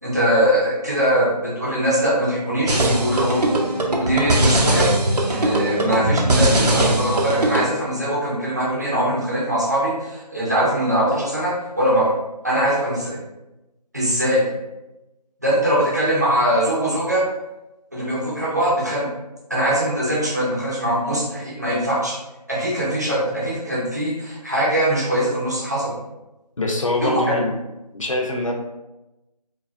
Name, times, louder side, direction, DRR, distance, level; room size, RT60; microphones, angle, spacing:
voice 1, 0.0-3.5 4.0-4.9 5.3-12.2 12.4-13.2 13.9-14.4 15.4-17.3 17.9-19.1 19.5-22.2 22.5-26.0 27.0-27.3, right 1 dB, 25° right, -6 dB, 0.6 m, -21 dB
sound 1, 2.7-7.7, right 1 dB, 70° right, 0.7 m, -20 dB
voice 2, 26.6-27.5 27.9-28.5, left 2 dB, 50° left, 1 dB, 0.5 m, -23 dB
4.7 x 2.3 x 2.5 m, 0.99 s
figure-of-eight pair, 175°, 21 cm